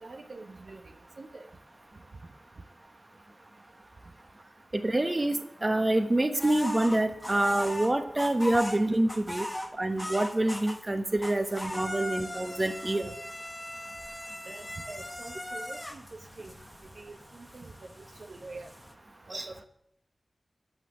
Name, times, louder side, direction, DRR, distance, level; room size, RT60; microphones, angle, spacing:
voice 1, 0.0-0.8 1.2-1.5 14.5-16.0 16.4-16.5 17.0-17.7 18.3-18.7 19.3-19.6, right 3 dB, 70° right, 3 dB, 0.9 m, -45 dB
voice 2, 4.7-9.5 9.8-13.1 19.3-19.4, right 1 dB, 35° right, 6 dB, 1.2 m, -27 dB
sound 1, 6.4-10.9 11.2-18.9, left 1 dB, 20° left, 1.2 m, -39 dB
8.7 x 5.8 x 8.1 m, 0.74 s
cardioid pair, 40°, 0 cm